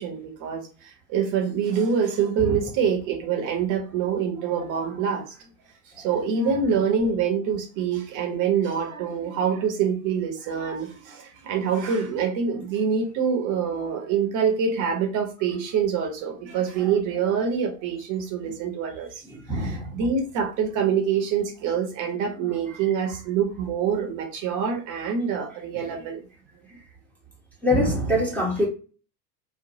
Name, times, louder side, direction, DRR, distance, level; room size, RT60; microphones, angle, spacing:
voice 1, 0.0-5.3 6.0-19.1 19.5-26.2, right 6 dB, 40° right, 0.9 m, -25 dB
voice 2, 19.5-19.9 27.6-28.7, equal, 5° left, 1.0 m, -23 dB
3.0 x 2.2 x 2.7 m
hypercardioid pair, 90°, 49 cm